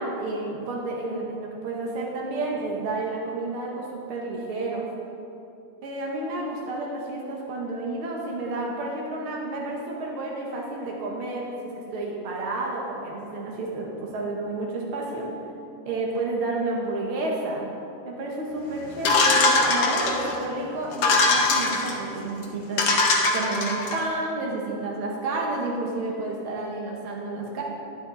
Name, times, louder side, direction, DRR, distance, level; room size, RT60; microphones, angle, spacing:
voice 1, 0.0-4.9 5.8-15.3 15.8-17.7 18.0-22.8 23.3-27.6, right 2 dB, 80° right, -2 dB, 1.2 m, -30 dB
sound 1, 19.0-20.4 20.9-21.9 22.4-22.5 22.8-24.0, left 3 dB, 65° left, 1.7 m, -21 dB
14.0 x 10.5 x 4.0 m, 2.7 s
omnidirectional pair, 4.6 m